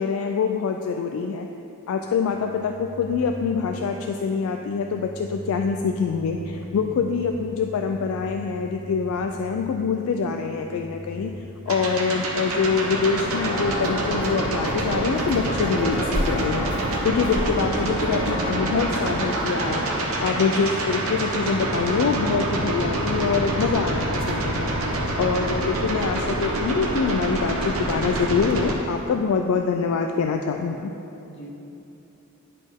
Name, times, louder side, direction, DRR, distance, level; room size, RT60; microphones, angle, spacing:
voice 1, 0.0-1.5 1.9-11.3 11.7-19.9 20.2-30.9, left 5 dB, 70° left, 4 dB, 0.3 m, -25 dB
sound 1, 2.0-12.6, left 2 dB, 30° right, 1.1 m, -41 dB
voice 2, 6.7-6.8 31.2-31.5, right 1 dB, 50° left, 0 dB, 0.8 m, -42 dB
sound 2, 11.7-28.7, right 1 dB, 70° right, 0.9 m, -26 dB
Walk footsteps, 13.3-20.0, equal, 10° left, 1.1 m, -31 dB
10.0 x 4.2 x 3.5 m, 2.9 s
head